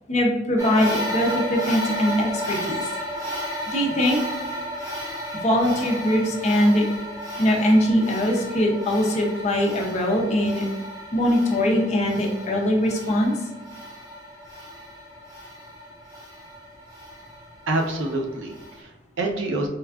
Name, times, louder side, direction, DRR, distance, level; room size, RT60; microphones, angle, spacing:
voice 1, 0.1-2.9 3.7-4.2 5.4-6.9 7.4-10.6 11.1-13.3, equal, 35° left, 0 dB, 0.6 m, -21 dB
sound 1, 0.6-18.8, equal, 20° right, 1.4 m, -33 dB
voice 2, 17.7-19.7, right 2 dB, 80° right, 2 dB, 0.5 m, -27 dB
4.3 x 2.2 x 2.4 m, 1.1 s
head